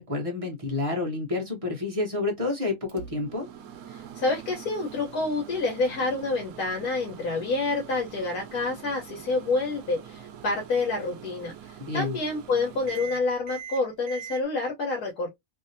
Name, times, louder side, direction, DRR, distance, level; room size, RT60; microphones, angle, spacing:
voice 1, 0.0-3.5 11.8-12.1, left 3 dB, 35° right, 0.5 m, -29 dB
Microwave oven, 2.9-14.4, right 9 dB, 75° right, 1.0 m, -44 dB
voice 2, 3.9-15.3, left 3 dB, 80° left, 1.4 m, -28 dB
2.8 x 2.6 x 2.6 m
omnidirectional pair, 1.6 m